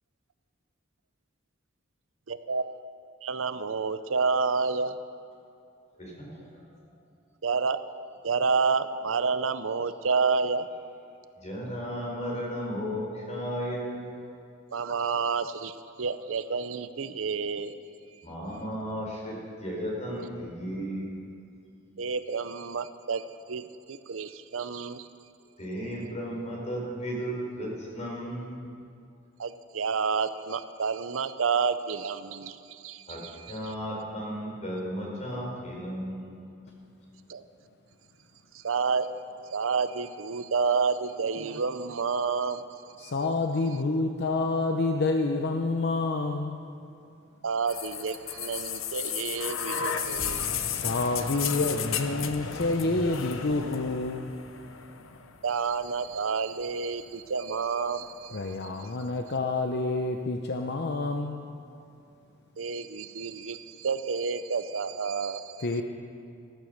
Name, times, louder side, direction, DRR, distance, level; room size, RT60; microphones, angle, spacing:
voice 1, 2.3-2.8 3.2-5.0 7.4-7.8 8.2-10.7 14.7-17.7 22.0-25.1 29.4-33.7 37.3-37.4 38.5-39.1 39.5-42.6 43.0-43.1 47.4-50.7 55.4-58.5 58.8-58.9 62.6-65.6, right 5 dB, 80° right, 12 dB, 0.6 m, -29 dB
voice 2, 6.0-6.6 11.4-14.2 18.2-21.3 25.6-28.7 33.1-36.5, equal, 35° left, -2 dB, 4.4 m, -35 dB
voice 3, 43.0-46.6 50.7-54.3 58.3-61.5 65.6-65.8, left 3 dB, 55° left, 4 dB, 0.7 m, -28 dB
sound 1, 47.7-55.6 56.6-56.7, left 7 dB, 80° left, 0.9 m, -33 dB
14.0 x 14.0 x 6.5 m, 2.5 s
head